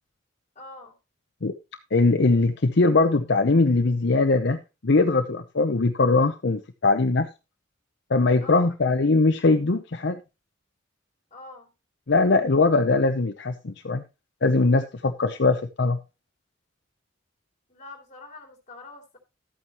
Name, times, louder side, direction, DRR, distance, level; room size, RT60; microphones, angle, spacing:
voice 1, 0.5-0.9 8.4-8.7 11.3-11.7 17.7-19.2, left 2 dB, 40° left, 3.0 m, -44 dB
voice 2, 1.9-7.3 8.1-10.2 12.1-14.0 14.4-16.0, left 3 dB, 60° left, 0.7 m, -21 dB
12.5 x 8.8 x 3.0 m
head